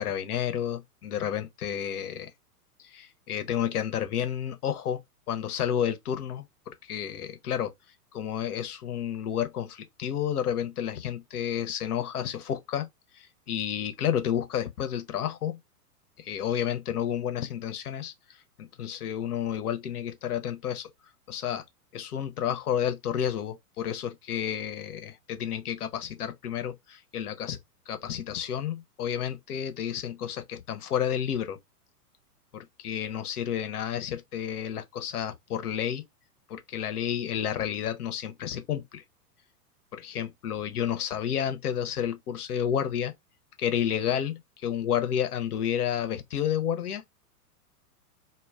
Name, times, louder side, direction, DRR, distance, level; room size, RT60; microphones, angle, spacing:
voice 1, 0.0-2.3 2.8-5.0 5.3-7.7 8.1-12.9 13.1-15.6 16.2-20.9 21.3-21.6 21.9-27.6 27.9-31.6 32.5-36.0 36.5-39.0 39.9-43.1 43.6-47.0, left 9 dB, 65° left, 0.7 m, -31 dB
2.1 x 2.1 x 3.4 m
hypercardioid pair, 110°, 48 cm